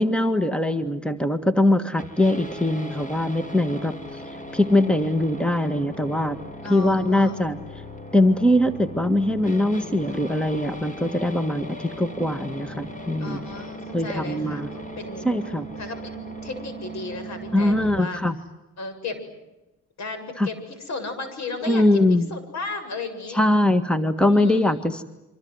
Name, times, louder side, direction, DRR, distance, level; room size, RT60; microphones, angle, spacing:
voice 1, 0.0-3.9 4.3-6.4 6.7-7.6 8.1-13.4 13.9-14.7 15.2-15.7 17.5-18.4 20.4-20.5 21.6-22.3 23.3-25.0, left 1 dB, 5° left, 10 dB, 1.7 m, -22 dB
sound 1, 2.0-18.0, equal, 25° left, 4.2 m, -38 dB
voice 2, 6.6-7.3 13.2-15.3 15.8-18.2 18.8-19.4 20.0-23.4 24.3-25.0, left 3 dB, 65° left, 9 dB, 7.6 m, -35 dB
27.5 x 25.5 x 8.0 m, 0.99 s
cardioid pair, 90°, 30 cm